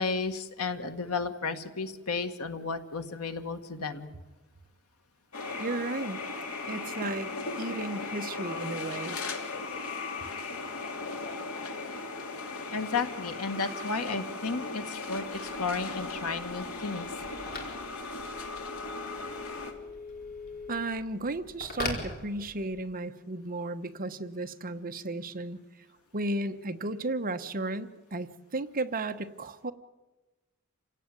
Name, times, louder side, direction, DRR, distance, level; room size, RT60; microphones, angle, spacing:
voice 1, 0.0-4.1 12.7-15.2 15.6-17.1, left 4 dB, 90° left, 7 dB, 1.9 m, -33 dB
sound 1, 5.3-19.7, left 3 dB, 70° left, 3.1 m, -37 dB
voice 2, 5.6-6.2 6.7-7.3 7.6-9.2 20.7-25.6 26.1-29.7, right 2 dB, 40° right, 9 dB, 1.1 m, -34 dB
Telephone, 15.0-22.9, left 3 dB, 45° left, 4.7 m, -42 dB
28.0 x 17.0 x 9.2 m, 1.2 s
head